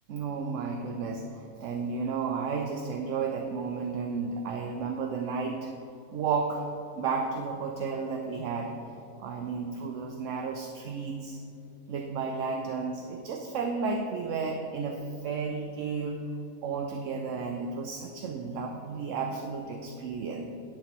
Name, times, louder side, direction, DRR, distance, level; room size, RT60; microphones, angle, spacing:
voice 1, 0.1-5.7 6.1-6.6 7.0-8.7 9.2-11.4 11.9-16.2 16.6-20.5, right 5 dB, 65° right, 3 dB, 0.9 m, -32 dB
10.0 x 8.4 x 3.1 m, 2.7 s
omnidirectional pair, 1.5 m